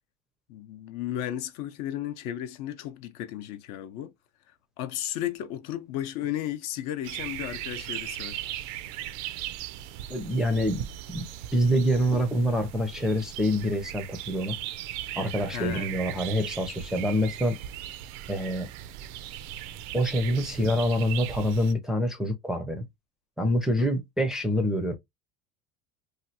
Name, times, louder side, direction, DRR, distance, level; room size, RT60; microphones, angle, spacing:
voice 1, 0.5-4.1 4.8-8.4 15.5-15.9 23.8-23.9, left 12 dB, 60° left, 0.6 m, -34 dB
sound 1, 7.0-21.7, right 12 dB, 65° right, 0.5 m, -38 dB
voice 2, 10.1-10.9 11.1-11.2 11.5-14.6 15.2-17.6 18.3-18.7 19.9-22.9 23.4-25.0, equal, ahead, 0.5 m, -26 dB
3.1 x 2.3 x 2.7 m
cardioid pair, 135°, 31 cm